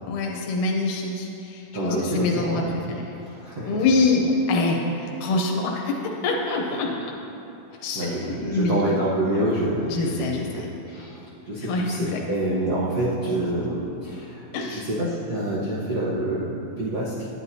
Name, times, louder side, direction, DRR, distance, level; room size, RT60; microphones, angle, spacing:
voice 1, 0.1-3.0 3.6-7.1 7.8-9.0 9.9-10.4 11.6-12.2 14.5-14.9, left 3 dB, 85° left, 0 dB, 2.2 m, -25 dB
voice 2, 1.7-3.8 7.7-17.1, right 1 dB, 90° right, -8 dB, 0.8 m, -27 dB
10.5 x 10.0 x 2.7 m, 2.8 s
omnidirectional pair, 3.4 m